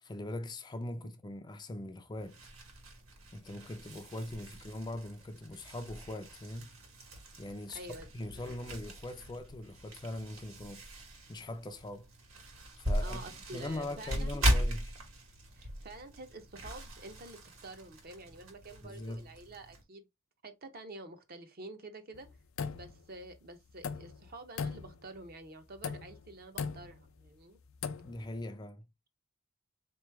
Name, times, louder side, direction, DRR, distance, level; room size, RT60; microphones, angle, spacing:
voice 1, 0.0-2.4 3.3-6.8 7.4-7.8 8.1-10.8 11.3-12.1 12.8-13.3 13.5-14.9 18.8-19.3 28.0-28.9, left 1 dB, 20° left, 0.4 m, -41 dB
sound 1, 2.2-19.8, equal, 75° right, 1.6 m, -38 dB
voice 2, 7.7-8.1 8.5-8.6 13.0-14.5 15.5-20.0 20.4-22.3 22.7-27.6, right 2 dB, 45° right, 0.7 m, -48 dB
sound 2, 22.1-23.3 23.7-24.3 24.6-25.3 25.7-26.3 26.6-27.1 27.7-28.2, left 6 dB, 75° left, 0.5 m, -39 dB
3.8 x 3.0 x 3.3 m
head